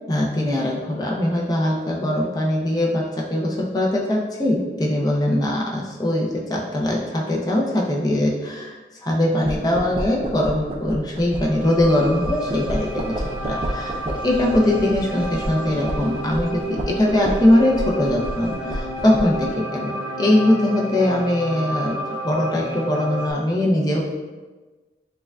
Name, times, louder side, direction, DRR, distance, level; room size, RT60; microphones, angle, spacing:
voice 1, 0.1-8.8 9.0-22.0 22.2-24.1, left 1 dB, 20° left, -2 dB, 0.5 m, -21 dB
sound 1, 9.4-19.5, right 1 dB, 30° right, 0.4 m, -31 dB
sound 2, 11.3-23.3, right 1 dB, 5° right, 0.9 m, -31 dB
6.7 x 2.3 x 2.3 m, 1.3 s
head